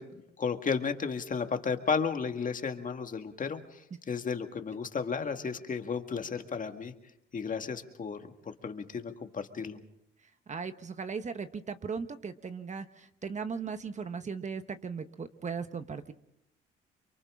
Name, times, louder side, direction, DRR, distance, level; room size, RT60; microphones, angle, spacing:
voice 1, 0.0-6.9 7.3-9.8, left 5 dB, 40° left, 6 dB, 1.9 m, -33 dB
voice 2, 10.5-16.1, right 5 dB, 35° right, 9 dB, 1.2 m, -37 dB
29.5 x 23.5 x 3.7 m, 0.78 s
cardioid pair, 90°, 20 cm